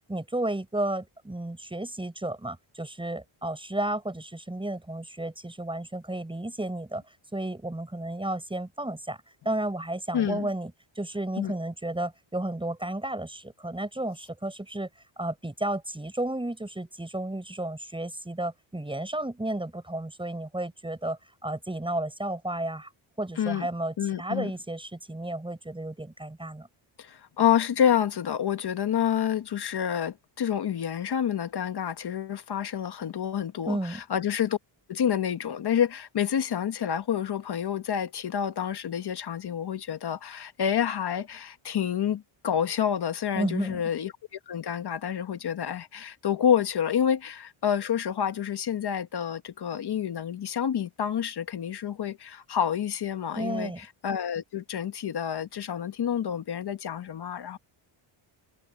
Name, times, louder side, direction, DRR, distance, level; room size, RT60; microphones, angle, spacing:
voice 1, 0.1-7.0 7.3-10.7 11.0-14.9 15.2-22.9 23.2-26.7 33.7-34.0 43.3-43.8 53.4-53.8, right 1 dB, 10° right, 6.2 m, -32 dB
voice 2, 10.1-10.5 11.4-11.5 23.4-23.7 24.0-24.5 27.0-34.6 34.9-57.6, left 9 dB, 50° left, 1.5 m, -28 dB
cardioid pair, 135°, 49 cm